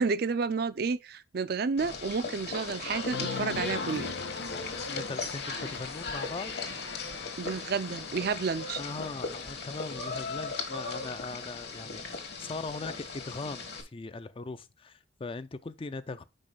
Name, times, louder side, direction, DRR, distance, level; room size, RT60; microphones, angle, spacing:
voice 1, 0.0-4.1 7.4-8.8, right 5 dB, 55° right, 0.4 m, -30 dB
sound 1, 1.8-13.8, left 4 dB, 60° left, 1.6 m, -38 dB
Cheering, 3.1-10.1, left 4 dB, 80° left, 0.7 m, -41 dB
voice 2, 4.8-6.5 8.8-16.2, left 3 dB, 30° left, 0.4 m, -40 dB
5.4 x 5.0 x 5.3 m
head